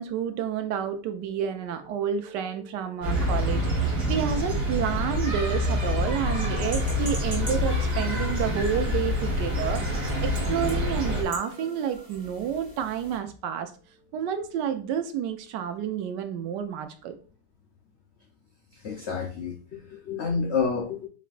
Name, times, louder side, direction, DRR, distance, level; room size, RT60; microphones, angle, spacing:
voice 1, 0.0-13.7 14.1-17.2, right 8 dB, 80° right, 8 dB, 1.2 m, -30 dB
sound 1, 3.0-11.2, left 1 dB, 40° right, 1.3 m, -26 dB
sound 2, 6.6-13.2, equal, 15° right, 1.1 m, -42 dB
voice 2, 18.7-21.1, left 5 dB, 85° left, 2 dB, 0.6 m, -29 dB
4.7 x 3.2 x 2.5 m, 0.39 s
omnidirectional pair, 1.9 m